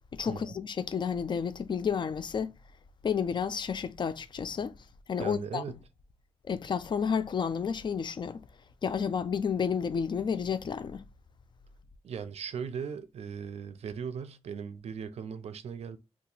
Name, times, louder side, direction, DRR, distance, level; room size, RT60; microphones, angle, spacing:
voice 1, 0.1-2.5 3.0-4.8 5.1-5.6 6.5-8.4 8.8-11.0, left 6 dB, 45° left, 0.4 m, -31 dB
voice 2, 5.2-5.8 12.0-16.0, right 7 dB, 70° right, 0.4 m, -38 dB
2.8 x 2.4 x 3.9 m
wide cardioid pair, 105°, 11 cm